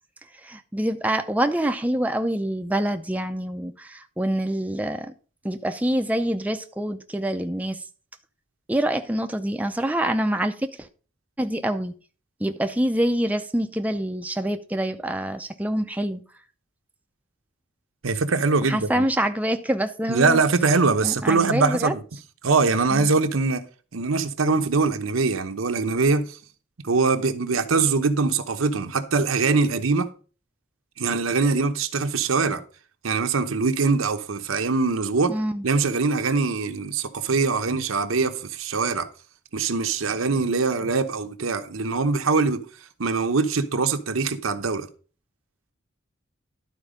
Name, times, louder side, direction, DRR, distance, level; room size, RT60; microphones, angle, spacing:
voice 1, 0.4-5.1 5.4-7.8 8.7-10.9 11.4-11.9 12.4-16.2 18.7-20.4 21.0-21.9 22.9-23.1 35.3-35.6, right 1 dB, 10° right, 0.5 m, -26 dB
voice 2, 18.0-19.0 20.1-22.0 22.4-23.6 23.9-26.4 26.8-30.1 31.0-32.6 33.0-35.4 35.6-39.1 39.5-42.6 43.0-44.9, right 4 dB, 90° right, 0.9 m, -23 dB
12.0 x 4.5 x 5.1 m
head